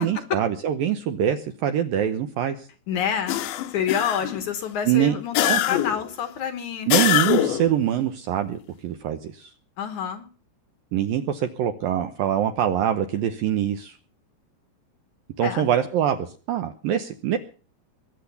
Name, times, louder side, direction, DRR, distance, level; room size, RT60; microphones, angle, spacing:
voice 1, 0.0-2.7 4.9-5.2 5.5-5.6 6.9-9.5 10.9-14.0 15.4-17.4, right 10 dB, 75° right, 8 dB, 2.2 m, -24 dB
voice 2, 2.9-3.4 3.7-6.9 9.8-10.3 15.4-15.7, left 8 dB, 65° left, 10 dB, 2.1 m, -28 dB
sound 1, 3.3-4.5 5.3-6.1 6.9-7.7, left 13 dB, 80° left, 3.2 m, -23 dB
21.5 x 8.4 x 6.9 m, 0.38 s
omnidirectional pair, 5.1 m